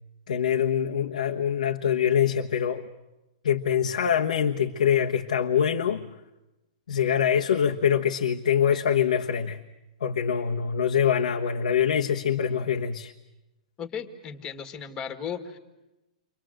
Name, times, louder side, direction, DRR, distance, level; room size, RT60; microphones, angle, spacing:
voice 1, 0.3-2.9 3.4-6.1 6.9-9.6 10.0-13.1, left 8 dB, 85° left, 2 dB, 1.2 m, -24 dB
voice 2, 13.8-15.6, left 7 dB, 15° left, 6 dB, 1.9 m, -35 dB
29.0 x 25.0 x 7.8 m, 1.0 s
hypercardioid pair, 160°, 4 cm